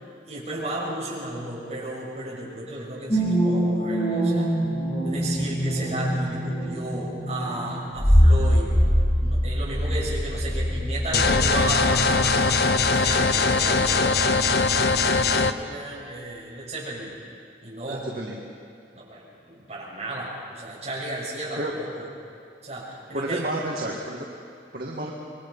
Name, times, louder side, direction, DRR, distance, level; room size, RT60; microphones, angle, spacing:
voice 1, 0.3-4.5 5.0-8.8 9.2-17.1 17.6-18.1 18.9-22.1 22.6-23.5, right 1 dB, 40° right, -5 dB, 6.5 m, -34 dB
sound 1, 3.1-13.6 13.9-14.0, equal, 35° left, 7.7 m, -23 dB
sound 2, 11.1-15.5, left 4 dB, 65° left, 0.8 m, -21 dB
voice 2, 17.9-18.4 21.6-21.7 23.1-24.3 24.7-25.1, right 1 dB, 55° right, -3 dB, 2.0 m, -30 dB
27.0 x 22.5 x 5.6 m, 2.3 s
head